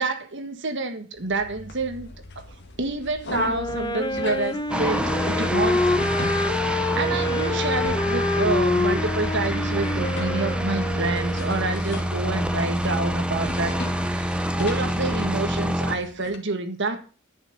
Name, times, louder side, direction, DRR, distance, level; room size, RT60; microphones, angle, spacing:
voice 1, 0.0-2.1 2.4-2.5 2.8-17.0, right 3 dB, 60° right, 7 dB, 1.7 m, -28 dB
sound 1, 1.2-16.4, left 2 dB, 55° left, 1.9 m, -40 dB
Wind instrument woodwind instrument, 3.5-11.8, left 2 dB, 20° left, 1.1 m, -27 dB
sound 2, 4.7-16.0, equal, 5° right, 0.9 m, -26 dB
10.5 x 6.4 x 6.7 m, 0.36 s
head